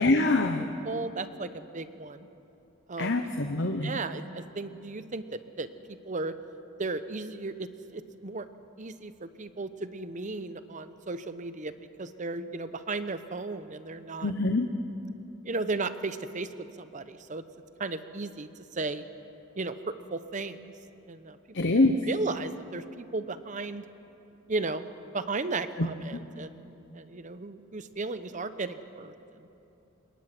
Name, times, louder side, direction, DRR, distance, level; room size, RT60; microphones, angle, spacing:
voice 1, 0.0-0.7 3.0-4.0 14.2-14.7 21.5-22.0 25.8-25.9, left 2 dB, 60° left, 5 dB, 1.0 m, -24 dB
voice 2, 0.6-2.3 2.9-3.1 3.8-5.7 6.0-6.4 6.8-8.5 8.8-11.7 12.0-14.3 15.4-16.5 16.8-17.4 17.8-19.0 19.6-20.7 21.1-21.4 21.6-21.7 22.0-23.9 24.5-24.9 25.1-26.6 26.9-29.5, right 3 dB, 35° right, 11 dB, 0.8 m, -35 dB
26.5 x 22.0 x 6.0 m, 2.8 s
head